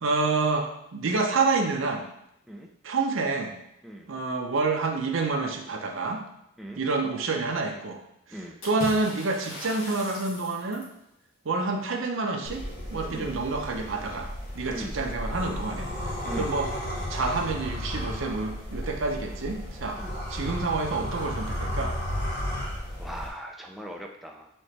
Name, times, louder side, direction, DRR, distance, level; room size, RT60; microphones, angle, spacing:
voice 1, 0.0-2.1 2.8-3.6 4.1-6.2 6.8-8.0 8.6-10.9 11.4-12.6 12.9-14.3 14.6-15.9 16.4-16.7 17.1-20.0 20.3-21.9, right 3 dB, 70° right, 3 dB, 0.6 m, -28 dB
Water / Splash splatter, 8.6-11.0, left 1 dB, 80° left, 1.6 m, -39 dB
sound 1, 12.4-23.3, left 1 dB, 50° left, 0.9 m, -34 dB
voice 2, 23.0-24.5, equal, ahead, 1 dB, 0.4 m, -39 dB
4.3 x 3.2 x 3.1 m, 0.79 s
head